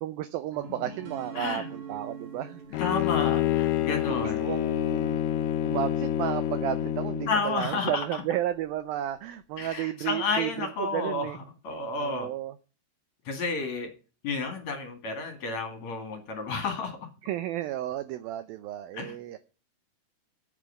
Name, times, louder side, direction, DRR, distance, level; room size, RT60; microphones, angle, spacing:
voice 1, 0.0-2.8 4.1-11.4 12.0-12.6 17.2-19.4, right 12 dB, 90° right, 13 dB, 2.0 m, -33 dB
sound 1, 0.5-3.7, right 5 dB, 50° right, 2.9 m, -43 dB
voice 2, 1.4-1.7 2.8-4.5 7.3-8.0 9.6-11.3 11.6-12.3 13.2-13.9 14.2-17.0 18.9-19.1, left 4 dB, 50° left, 6 dB, 2.7 m, -31 dB
Bowed string instrument, 2.7-7.5, left 11 dB, 75° left, 2.5 m, -27 dB
9.1 x 8.4 x 6.8 m, 0.36 s
omnidirectional pair, 5.1 m